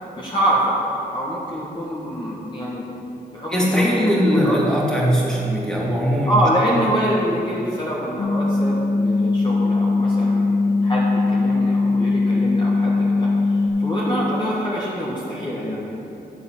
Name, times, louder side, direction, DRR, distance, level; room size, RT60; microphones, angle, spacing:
voice 1, 0.2-2.9 3.3-4.6 6.2-10.5 10.8-15.9, equal, 25° left, -6 dB, 1.6 m, -25 dB
voice 2, 3.5-6.4, equal, 5° left, -4 dB, 2.3 m, -20 dB
sound 1, 8.2-13.7, left 3 dB, 60° left, 1.4 m, -20 dB
11.0 x 3.8 x 7.4 m, 2.9 s
cardioid pair, 60°, 17 cm